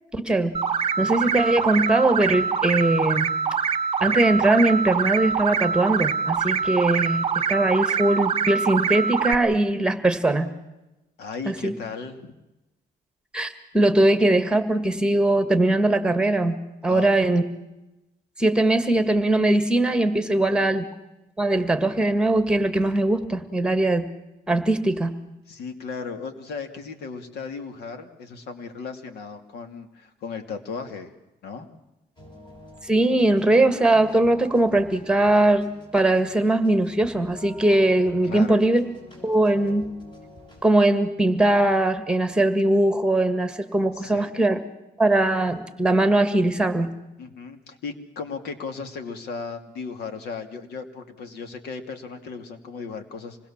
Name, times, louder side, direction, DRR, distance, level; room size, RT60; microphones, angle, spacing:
voice 1, 0.1-0.5 1.0-3.4 4.0-10.5 11.5-11.7 13.3-16.6 16.8-17.4 18.4-20.8 21.4-24.1 24.5-25.1 32.8-35.7 35.9-38.9 39.2-39.9 40.6-44.6 45.0-46.9, right 2 dB, 5° right, 9 dB, 1.8 m, -21 dB
sound 1, 0.5-9.3, right 6 dB, 35° right, 1.1 m, -24 dB
voice 2, 11.2-12.4 16.9-17.1 20.3-20.8 25.5-31.1 31.4-31.7 38.2-38.6 43.9-44.3 47.2-53.4, left 5 dB, 80° left, 8 dB, 2.6 m, -36 dB
sound 2, 32.2-40.7, equal, 30° left, 6.9 m, -46 dB
26.5 x 20.5 x 7.3 m, 0.98 s
cardioid pair, 140°, 16 cm